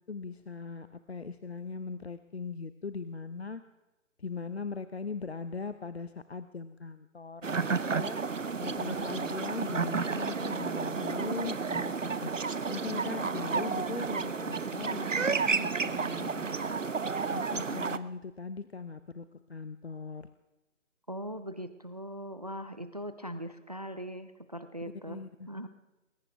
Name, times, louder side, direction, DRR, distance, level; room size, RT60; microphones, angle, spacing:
voice 1, 0.1-3.6 4.2-8.2 8.6-12.3 12.7-16.9 17.3-20.3 25.1-25.5, left 4 dB, 55° left, 12 dB, 0.8 m, -40 dB
sound 1, 7.4-18.0, right 5 dB, 70° right, 0.9 m, -31 dB
voice 2, 21.1-25.2 25.4-25.7, equal, 30° right, 11 dB, 0.6 m, -40 dB
21.0 x 20.0 x 3.4 m, 1.0 s
figure-of-eight pair, 150°, 40 cm